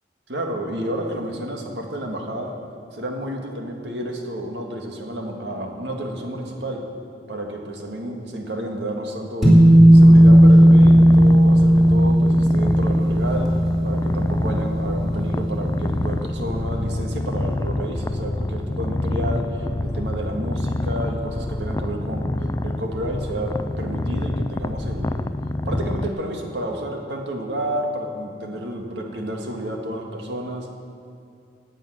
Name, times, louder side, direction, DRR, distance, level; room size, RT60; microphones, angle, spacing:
voice 1, 0.3-2.5 2.9-6.8 7.3-13.5 13.8-25.2 25.7-30.7, right 1 dB, 85° right, 2 dB, 1.9 m, -30 dB
sound 1, 9.4-16.0, equal, ahead, 3.2 m, -14 dB
Purr, 9.9-26.1, left 1 dB, 20° left, 0.4 m, -27 dB
17.5 x 8.9 x 6.4 m, 2.4 s
head